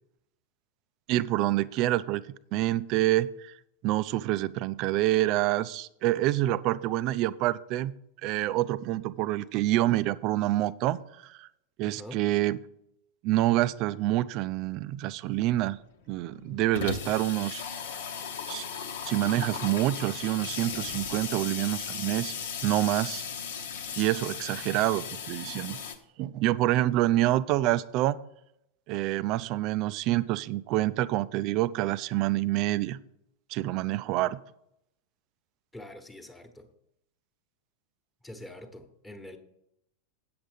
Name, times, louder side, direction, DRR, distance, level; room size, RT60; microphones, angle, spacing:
voice 1, 1.1-2.2 2.5-3.5 3.8-7.9 8.2-11.5 11.8-12.6 13.2-15.8 16.1-17.6 18.5-18.7 19.1-22.3 22.6-23.2 24.0-25.8 26.2-28.2 28.9-33.0 33.5-34.4, right 15 dB, 40° right, 16 dB, 0.4 m, -27 dB
voice 2, 11.8-12.2 35.7-36.7 38.2-39.4, left 1 dB, 10° left, 4 dB, 1.3 m, -45 dB
Water tap faucet / Sink (filling or washing), 15.3-15.4 15.7-15.8 16.1-26.0, left 6 dB, 60° left, 1.1 m, -36 dB
8.7 x 7.7 x 5.2 m, 0.78 s
figure-of-eight pair, 90°, 0 cm